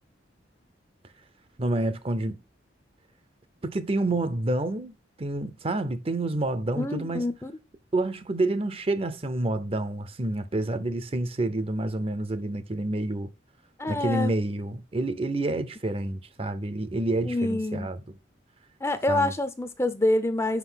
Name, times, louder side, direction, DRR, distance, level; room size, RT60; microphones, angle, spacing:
voice 1, 1.6-2.4 3.6-7.3 7.9-13.3 13.9-18.0 19.1-19.3, right 2 dB, 30° right, 0.6 m, -28 dB
voice 2, 6.8-7.5 13.8-14.3 17.2-17.9 18.8-20.6, left 1 dB, 15° left, 0.5 m, -26 dB
5.9 x 5.3 x 5.6 m
head